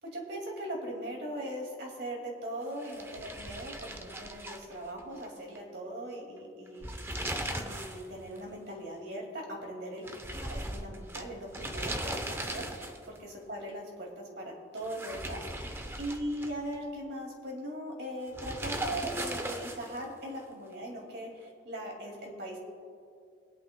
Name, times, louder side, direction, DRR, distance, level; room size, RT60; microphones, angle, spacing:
voice 1, 0.0-6.9 7.2-10.0 10.5-22.6, right 1 dB, 60° right, -1 dB, 2.2 m, -40 dB
sound 1, 2.8-5.3 5.6-5.7 6.7-8.1 8.4-8.5 10.1-13.2 14.8-16.8 18.3-20.0, right 1 dB, 15° right, 0.6 m, -38 dB
25.5 x 8.6 x 2.2 m, 2.4 s
head